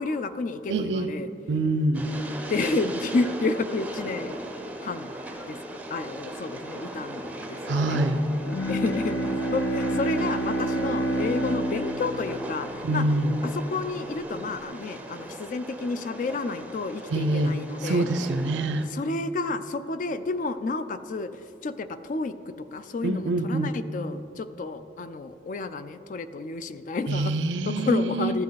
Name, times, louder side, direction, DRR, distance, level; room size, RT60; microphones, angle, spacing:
voice 1, 0.0-1.3 2.5-4.4 4.8-5.1 5.5-5.6 5.9-8.0 8.7-13.1 13.4-18.1 18.9-27.3 27.7-28.4, left 3 dB, 45° left, 12 dB, 0.3 m, -30 dB
voice 2, 0.7-1.1 1.5-2.1 7.7-8.2 12.8-13.3 17.1-17.5 17.8-18.8 23.0-23.7 27.1-28.3, right 2 dB, 80° right, 11 dB, 0.5 m, -25 dB
Train, 1.9-18.9, right 1 dB, 10° right, 0.5 m, -38 dB
Bowed string instrument, 8.3-13.7, right 1 dB, 75° left, 0.8 m, -29 dB
14.0 x 5.3 x 4.0 m, 2.7 s
head